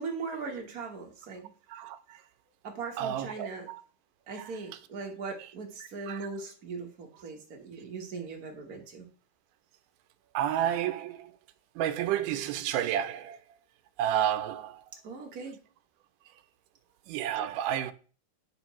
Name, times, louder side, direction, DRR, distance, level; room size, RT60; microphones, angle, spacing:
voice 1, 0.0-1.5 2.6-3.7 4.3-9.1 15.0-15.6, right 4 dB, 65° right, 0.9 m, -39 dB
voice 2, 3.0-3.8 6.1-6.2 10.3-11.3 11.8-13.4 14.0-14.8 17.1-17.9, right 11 dB, 85° right, 2.2 m, -30 dB
8.6 x 5.5 x 3.0 m
omnidirectional pair, 3.6 m